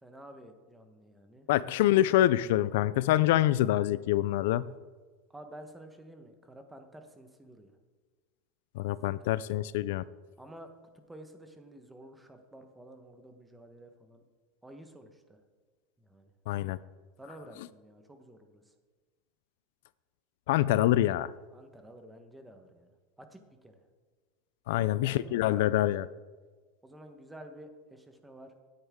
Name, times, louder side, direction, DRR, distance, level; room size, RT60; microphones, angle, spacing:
voice 1, 0.0-1.5 5.3-7.7 8.9-9.3 10.4-10.7 11.1-14.2 14.6-15.4 16.0-16.3 17.2-18.7 21.5-23.9 24.7-25.8 26.8-28.5, right 1 dB, 5° right, 6 dB, 1.1 m, -51 dB
voice 2, 1.5-4.7 8.8-10.0 16.5-16.8 20.5-21.3 24.7-26.1, left 14 dB, 70° left, 18 dB, 0.4 m, -26 dB
16.5 x 9.6 x 3.7 m, 1.4 s
supercardioid pair, 160°, 0 cm